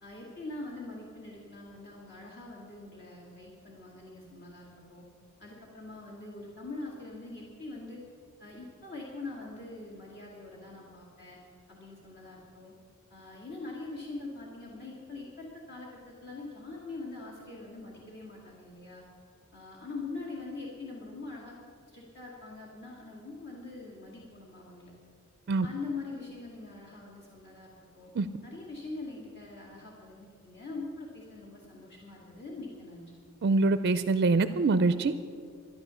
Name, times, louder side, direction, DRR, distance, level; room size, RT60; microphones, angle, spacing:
voice 1, 0.0-5.0 5.4-8.0 8.4-11.4 11.7-12.7 13.1-19.0 19.5-21.5 21.9-24.9 25.6-28.1 28.4-33.1, left 3 dB, 50° left, -4 dB, 2.1 m, -43 dB
voice 2, 33.4-35.3, right 3 dB, 50° right, 12 dB, 0.4 m, -25 dB
13.0 x 10.5 x 6.9 m, 2.2 s
head